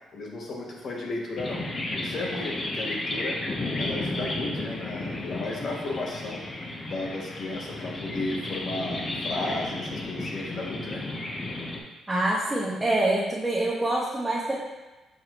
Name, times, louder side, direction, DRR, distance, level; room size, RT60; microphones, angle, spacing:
voice 1, 0.1-1.6 2.0-3.4 3.8-6.4 6.9-11.0, left 2 dB, 55° left, -1 dB, 1.2 m, -34 dB
sound 1, 1.4-11.8, left 2 dB, 35° left, 0.9 m, -33 dB
voice 2, 12.1-14.5, right 1 dB, 10° right, -7 dB, 1.2 m, -25 dB
7.1 x 4.7 x 3.0 m, 1.1 s
cardioid pair, 90°, 0 cm